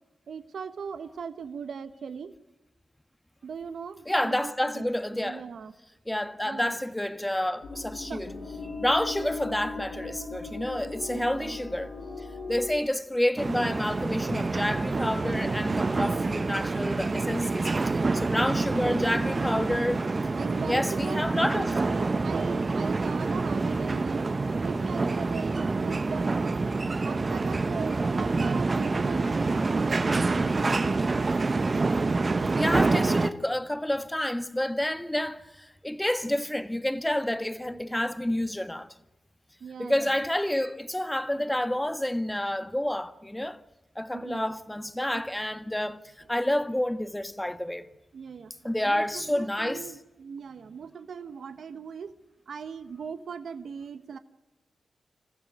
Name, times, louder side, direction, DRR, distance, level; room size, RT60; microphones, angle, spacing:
voice 1, 0.3-2.3 3.4-5.7 6.4-6.8 8.1-8.2 11.1-11.6 15.9-16.2 20.3-21.2 21.5-26.6 27.0-31.3 39.6-40.1 41.8-41.9 44.1-44.5 45.1-45.2 48.1-48.5 48.8-52.1 52.5-54.2, right 6 dB, 75° right, 1.0 m, -39 dB
voice 2, 4.1-5.4 6.0-8.3 8.6-20.0 20.6-21.8 32.6-38.9 39.8-43.6 43.9-46.0 46.3-47.9 48.6-49.9, left 1 dB, 10° left, 1.5 m, -29 dB
sound 1, 7.6-12.8, left 3 dB, 75° left, 7.7 m, -38 dB
sound 2, 13.4-33.3, right 3 dB, 40° right, 1.1 m, -27 dB
27.5 x 14.5 x 9.1 m
cardioid pair, 50°, 0 cm